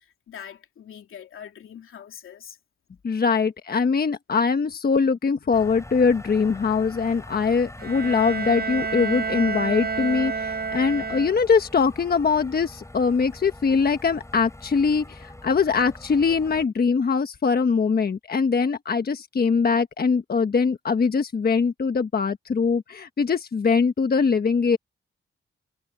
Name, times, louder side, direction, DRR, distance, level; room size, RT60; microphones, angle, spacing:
voice 1, 0.3-2.6, left 9 dB, 85° left, 3.0 m, -42 dB
voice 2, 3.0-24.8, left 5 dB, 50° left, 1.3 m, -22 dB
sound 1, 5.5-16.6, left 1 dB, 15° left, 7.7 m, -43 dB
Bowed string instrument, 7.8-11.7, right 5 dB, 50° right, 7.9 m, -29 dB
cardioid pair, 75°, 21 cm